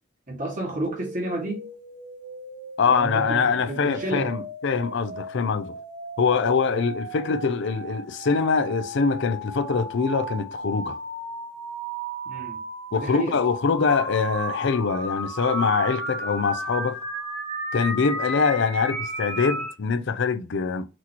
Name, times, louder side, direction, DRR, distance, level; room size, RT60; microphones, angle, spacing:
voice 1, 0.3-1.6 2.9-4.3 12.3-12.6 12.9-13.4, right 1 dB, 35° right, 1.8 m, -31 dB
sound 1, 0.8-19.7, right 1 dB, 85° right, 2.2 m, -34 dB
voice 2, 2.8-5.7 6.2-11.0 12.9-17.0 17.7-20.8, left 5 dB, 55° left, 0.4 m, -24 dB
6.0 x 3.0 x 2.9 m
head